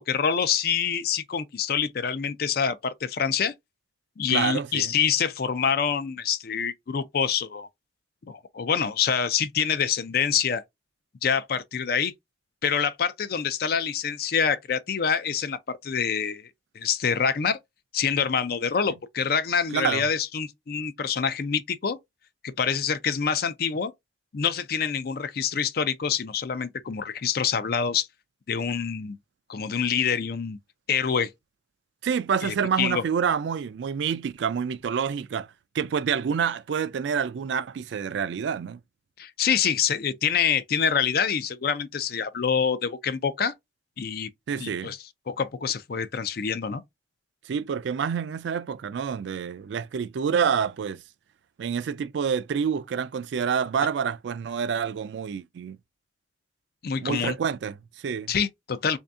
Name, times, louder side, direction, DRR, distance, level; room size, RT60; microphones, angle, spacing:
voice 1, 0.0-3.5 4.2-7.7 8.3-10.6 11.2-12.1 12.6-16.5 16.8-17.6 17.9-22.0 22.4-23.9 24.3-28.1 28.5-29.2 29.5-30.6 30.9-31.3 32.4-33.0 39.2-43.5 44.0-44.3 44.6-45.0 45.3-46.8 56.8-57.3 58.3-59.0, left 7 dB, 50° left, 0.4 m, -26 dB
voice 2, 4.3-4.9 19.7-20.0 32.0-35.5 35.7-38.8 44.5-44.9 47.5-51.0 51.6-55.8 57.0-58.3, right 7 dB, 70° right, 0.3 m, -27 dB
3.4 x 2.7 x 3.4 m
head